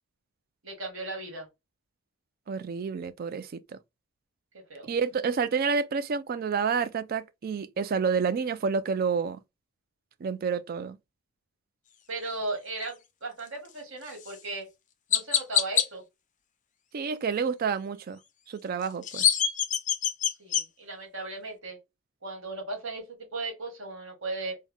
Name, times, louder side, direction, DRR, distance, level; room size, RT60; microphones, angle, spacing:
voice 1, 0.6-1.5 4.7-4.9 12.1-14.7 15.1-16.0 20.4-21.8 22.2-24.6, right 2 dB, 60° right, 1.7 m, -36 dB
voice 2, 2.5-3.5 4.8-9.4 10.2-11.0 16.9-18.2 18.5-19.3, right 5 dB, 40° right, 0.3 m, -29 dB
Chirp tweet, 14.2-14.4 15.1-15.9 18.8-20.6, left 9 dB, 35° left, 0.4 m, -25 dB
3.5 x 2.1 x 3.5 m
head